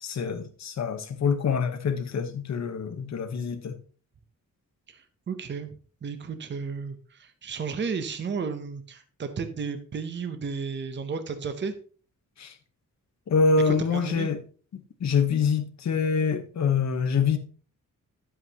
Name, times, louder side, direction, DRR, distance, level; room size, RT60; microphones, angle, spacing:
voice 1, 0.0-3.8 12.4-12.5 13.3-14.4 15.0-17.4, left 5 dB, 60° left, 6 dB, 1.1 m, -25 dB
voice 2, 4.9-11.7 13.6-14.3, right 5 dB, 35° right, 9 dB, 0.7 m, -33 dB
9.7 x 7.9 x 2.8 m, 0.40 s
wide cardioid pair, 180°, 32 cm